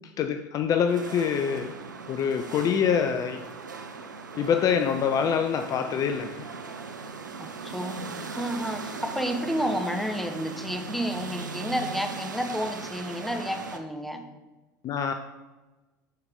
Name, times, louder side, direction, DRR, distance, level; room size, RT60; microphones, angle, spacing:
voice 1, 0.2-1.8 2.1-3.4 4.4-6.5 14.8-15.1, left 7 dB, 35° left, 7 dB, 0.5 m, -25 dB
sound 1, 0.9-13.8, right 4 dB, 80° right, 0.6 m, -39 dB
voice 2, 7.4-8.0 8.3-14.2, equal, ahead, 4 dB, 1.0 m, -30 dB
11.0 x 4.7 x 3.6 m, 1.2 s
figure-of-eight pair, 70°, 10 cm